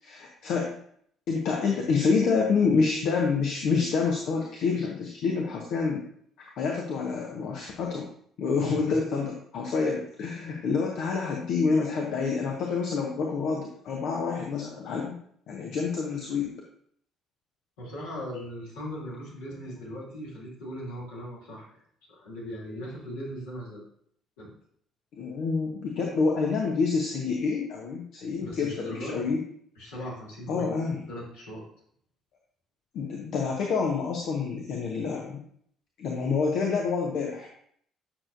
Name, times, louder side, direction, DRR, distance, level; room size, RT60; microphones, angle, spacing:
voice 1, 0.0-0.8 1.3-6.0 6.6-8.1 8.4-15.2 15.5-16.5 25.1-29.4 30.5-31.0 32.9-35.4 36.0-37.5, left 5 dB, 60° left, 0 dB, 1.0 m, -27 dB
voice 2, 8.6-9.0 17.8-21.7 22.1-23.8 24.4-24.5 28.4-29.3 29.7-30.7 31.1-31.6, equal, 75° left, -6 dB, 2.9 m, -38 dB
8.7 x 6.5 x 2.6 m, 0.65 s
figure-of-eight pair, 50°, 0 cm